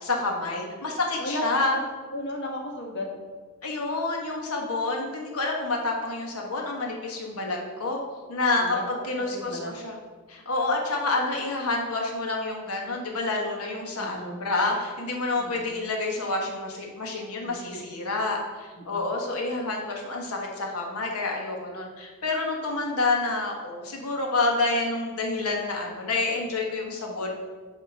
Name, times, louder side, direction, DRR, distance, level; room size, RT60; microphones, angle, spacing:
voice 1, 0.0-1.7 3.6-8.0 8.3-8.8 9.1-9.9 10.3-27.3, left 3 dB, 90° left, 0 dB, 1.3 m, -28 dB
voice 2, 2.1-3.1 8.6-8.8 9.3-9.7 14.0-14.4 15.4-15.7 17.4-17.7 18.8-19.1, left 1 dB, 55° left, 1 dB, 1.3 m, -35 dB
8.2 x 2.9 x 5.5 m, 1.5 s
head